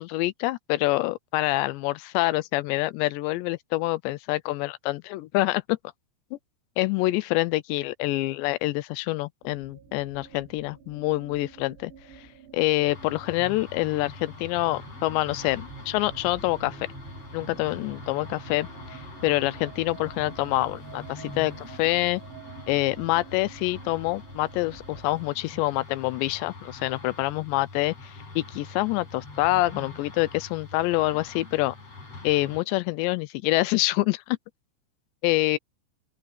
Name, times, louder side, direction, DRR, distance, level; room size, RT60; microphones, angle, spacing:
voice 1, 0.0-5.8 6.8-11.9 12.5-16.8 17.3-22.2 22.7-31.8 32.2-34.4 35.2-35.6, left 19 dB, 80° left, 2.7 m, -26 dB
sound 1, 9.4-25.3, right 7 dB, 75° right, 6.1 m, -47 dB
sound 2, 12.9-32.6, left 3 dB, 30° left, 8.6 m, -44 dB
open air
omnidirectional pair, 5.5 m